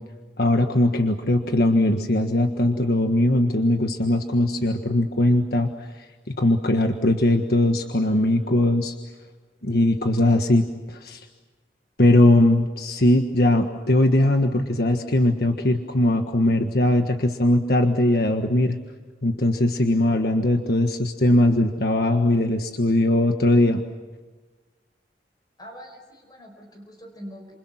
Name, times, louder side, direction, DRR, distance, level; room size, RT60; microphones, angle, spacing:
voice 1, 0.4-8.9 9.6-11.2 12.0-18.8 19.2-23.8, left 1 dB, 60° left, 5 dB, 1.6 m, -20 dB
voice 2, 25.6-27.6, equal, 25° left, 4 dB, 5.1 m, -43 dB
29.5 x 28.0 x 6.0 m, 1.3 s
head